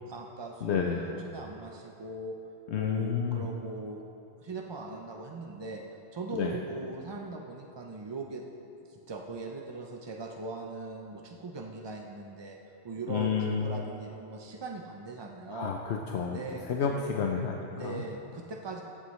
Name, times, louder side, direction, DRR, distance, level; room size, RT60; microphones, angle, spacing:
voice 1, 0.1-2.4 2.7-4.0 4.4-5.8 6.1-8.5 8.9-12.6 12.8-15.7 16.3-17.2 17.7-18.8, right 3 dB, 40° right, 1 dB, 0.4 m, -40 dB
voice 2, 0.6-1.0 2.7-3.5 6.3-6.6 13.1-13.9 15.5-16.4 16.6-18.0, left 6 dB, 80° left, 2 dB, 0.9 m, -30 dB
15.5 x 8.2 x 3.1 m, 2.8 s
omnidirectional pair, 1.1 m